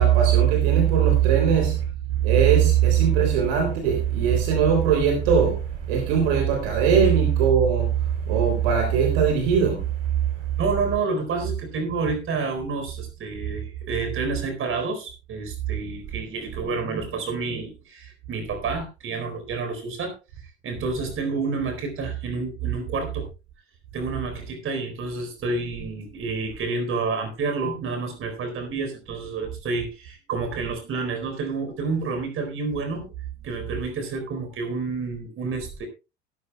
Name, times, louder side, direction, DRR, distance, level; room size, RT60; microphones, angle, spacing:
voice 1, 0.0-1.8 2.1-9.9, right 8 dB, 60° right, 3.4 m, -20 dB
voice 2, 10.6-20.1 20.6-23.3 23.9-33.1 33.4-35.9, right 4 dB, 40° right, 4.1 m, -29 dB
17.0 x 13.5 x 2.3 m
figure-of-eight pair, 70°, 34 cm